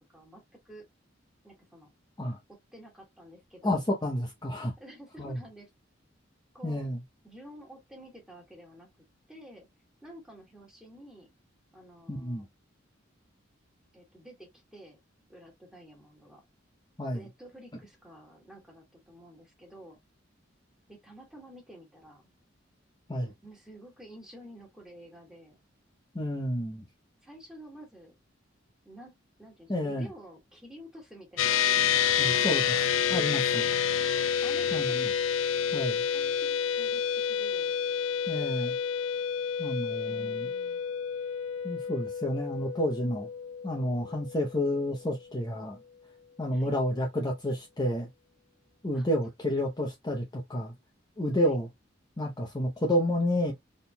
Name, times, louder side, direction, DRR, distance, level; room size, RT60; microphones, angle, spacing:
voice 1, 0.1-0.8 1.4-1.9 2.5-3.9 4.8-5.7 6.5-6.9 7.2-9.7 10.0-11.3 11.7-12.5 13.9-15.0 15.3-16.4 17.1-20.0 20.9-22.3 23.4-25.6 27.2-28.1 28.8-32.9 34.4-35.1 35.8-37.7 40.0-40.8 46.5-46.8 48.9-49.1 51.4-51.6, equal, 5° right, 1.9 m, -50 dB
voice 2, 3.6-4.7 5.2-5.4 6.6-7.0 12.1-12.5 17.0-17.2 23.1-23.3 26.1-26.9 29.7-30.1 32.2-32.7 33.1-33.6 34.7-35.1 35.7-36.0 38.3-38.8 39.6-40.5 41.6-43.3 43.6-45.8 46.4-48.1 48.8-50.7 51.2-51.7 52.2-53.5, left 1 dB, 20° left, 0.8 m, -30 dB
sound 1, 31.4-45.0, left 8 dB, 85° left, 0.4 m, -29 dB
4.4 x 3.6 x 2.2 m
head